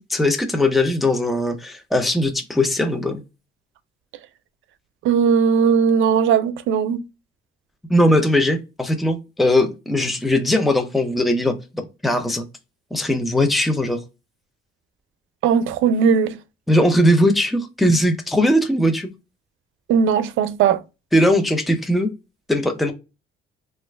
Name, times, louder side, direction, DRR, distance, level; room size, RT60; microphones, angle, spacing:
voice 1, 0.0-3.2 7.9-12.4 12.9-14.0 16.7-19.1 21.1-22.1 22.5-22.9, left 1 dB, ahead, 0.5 m, -19 dB
voice 2, 5.0-7.0 15.4-16.4 19.9-20.8, right 7 dB, 80° right, 0.4 m, -18 dB
2.9 x 2.4 x 3.2 m
cardioid pair, 90°, 20 cm